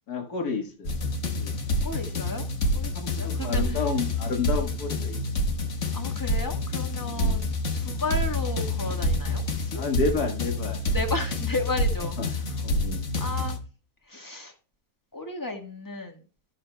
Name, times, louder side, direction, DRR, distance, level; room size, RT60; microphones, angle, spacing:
voice 1, 0.1-0.9 1.4-1.5 2.9-5.2 7.0-7.4 9.7-10.8 12.2-12.3 12.6-13.1, left 4 dB, 85° left, 2 dB, 2.1 m, -30 dB
sound 1, 0.8-13.6, left 1 dB, 55° left, 1.4 m, -28 dB
voice 2, 1.8-2.4 2.7-3.8 5.9-7.4 7.7-9.8 10.9-12.2 13.2-13.6 14.1-14.5 15.1-16.2, left 2 dB, 15° left, 3 dB, 1.3 m, -33 dB
13.5 x 6.6 x 2.2 m, 0.36 s
omnidirectional pair, 1.6 m